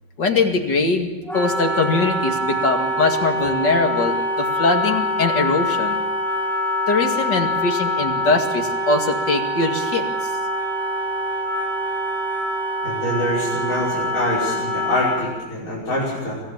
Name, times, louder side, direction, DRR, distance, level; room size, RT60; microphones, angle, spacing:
voice 1, 0.2-6.0 6.9-10.1, left 3 dB, 65° left, 3 dB, 2.8 m, -21 dB
Wind instrument woodwind instrument, 1.3-15.4, equal, ahead, 3.0 m, -24 dB
voice 2, 12.8-16.4, left 1 dB, 45° left, -7 dB, 6.3 m, -25 dB
25.5 x 16.5 x 7.4 m, 1.1 s
omnidirectional pair, 2.0 m